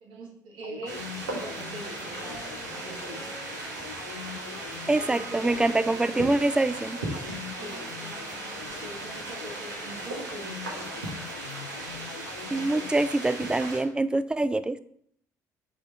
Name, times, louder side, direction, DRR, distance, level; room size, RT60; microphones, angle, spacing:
voice 1, 0.0-3.4 4.9-6.3 7.6-7.8 8.6-11.0, right 2 dB, 60° right, -2 dB, 1.8 m, -43 dB
sound 1, 0.6-13.3, left 10 dB, 75° left, 0.4 m, -44 dB
sound 2, 0.9-13.8, right 2 dB, 80° right, 1.4 m, -37 dB
Wind instrument woodwind instrument, 1.7-9.4, right 2 dB, 30° right, 1.2 m, -49 dB
voice 2, 4.9-7.0 12.5-14.8, right 2 dB, 10° right, 14 dB, 0.4 m, -25 dB
5.4 x 4.8 x 4.5 m, 0.68 s
figure-of-eight pair, 50°, 9 cm